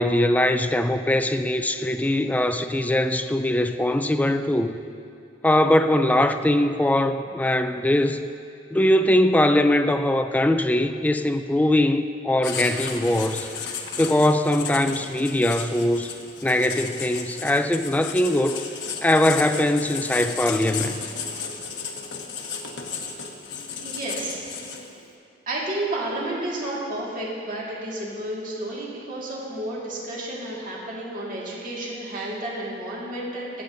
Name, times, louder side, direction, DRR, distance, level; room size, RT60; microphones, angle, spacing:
voice 1, 0.0-4.7 5.4-8.3 8.7-13.5 14.0-16.1 16.4-18.6 19.0-21.1, left 1 dB, 10° left, 8 dB, 0.4 m, -21 dB
Writing, 12.4-25.0, left 6 dB, 70° left, 1.1 m, -34 dB
voice 2, 23.8-24.5 25.5-33.5, right 1 dB, 50° right, -5 dB, 2.0 m, -31 dB
21.0 x 8.5 x 2.7 m, 2.5 s
head